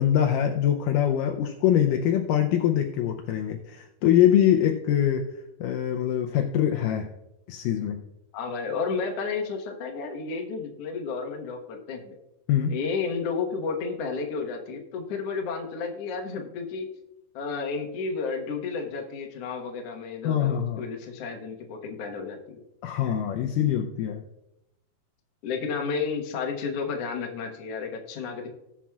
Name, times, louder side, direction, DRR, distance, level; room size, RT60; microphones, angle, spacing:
voice 1, 0.0-5.3 5.6-7.1 7.5-8.0 12.5-12.7 20.2-20.8 22.8-24.2, left 10 dB, 80° left, 3 dB, 1.9 m, -23 dB
voice 2, 8.3-12.2 12.7-16.9 17.3-22.6 25.4-28.5, left 5 dB, 65° left, 2 dB, 1.6 m, -32 dB
19.0 x 7.4 x 2.3 m, 0.89 s
omnidirectional pair, 4.4 m